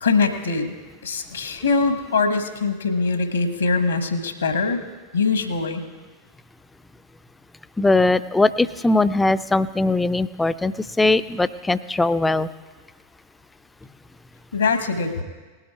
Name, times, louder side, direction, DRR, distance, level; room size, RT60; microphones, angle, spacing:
voice 1, 0.0-0.8 1.0-4.8 5.1-5.8 14.5-15.2, left 4 dB, 75° left, 8 dB, 1.1 m, -22 dB
voice 2, 7.8-12.5, left 2 dB, 10° left, 14 dB, 0.4 m, -20 dB
19.0 x 7.9 x 4.6 m, 1.3 s
figure-of-eight pair, 90°, 0 cm